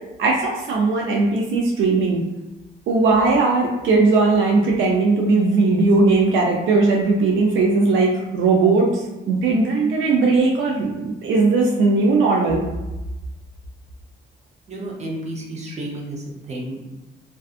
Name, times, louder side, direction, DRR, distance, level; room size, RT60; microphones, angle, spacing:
voice 1, 0.2-2.2 2.9-12.6, right 3 dB, 75° right, -1 dB, 0.4 m, -18 dB
voice 2, 14.7-16.8, right 1 dB, 35° right, -3 dB, 0.7 m, -31 dB
2.5 x 2.3 x 2.4 m, 1.0 s
cardioid pair, 90°, 20 cm